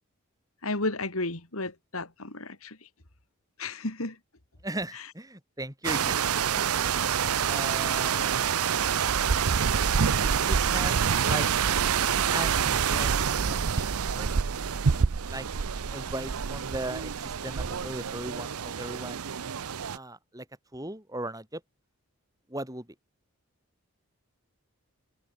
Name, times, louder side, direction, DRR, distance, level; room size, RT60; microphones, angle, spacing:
voice 1, 0.6-2.8 3.6-4.2 9.4-9.5, left 2 dB, 70° left, 3.4 m, -33 dB
voice 2, 4.6-9.2 10.2-11.5 12.3-13.2 13.5-14.4 15.3-15.5 15.9-19.2 19.9-20.5 20.7-21.6 22.5-22.9, right 1 dB, 15° right, 5.8 m, -38 dB
sound 1, 5.8-20.0, right 7 dB, 80° right, 0.7 m, -27 dB
head